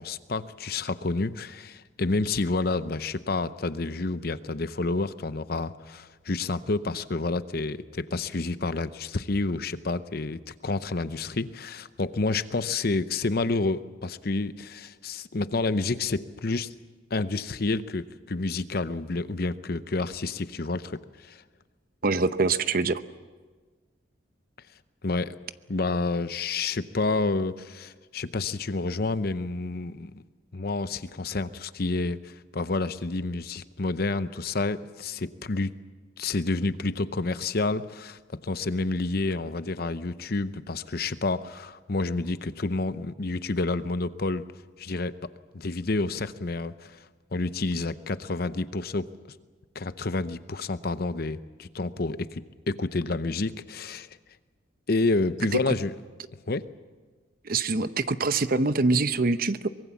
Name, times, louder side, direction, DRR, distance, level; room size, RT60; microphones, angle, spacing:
voice 1, 0.0-16.7 17.1-21.4 25.0-25.4 25.7-30.2 30.5-35.8 36.2-44.5 44.8-45.2 45.5-47.0 47.3-49.1 49.7-54.1 54.9-55.9 56.5-56.7, left 3 dB, 55° left, 13 dB, 0.8 m, -29 dB
voice 2, 22.0-23.0 55.7-55.8 57.4-59.7, right 3 dB, 50° right, 12 dB, 0.8 m, -24 dB
24.0 x 22.0 x 7.3 m, 1.4 s
head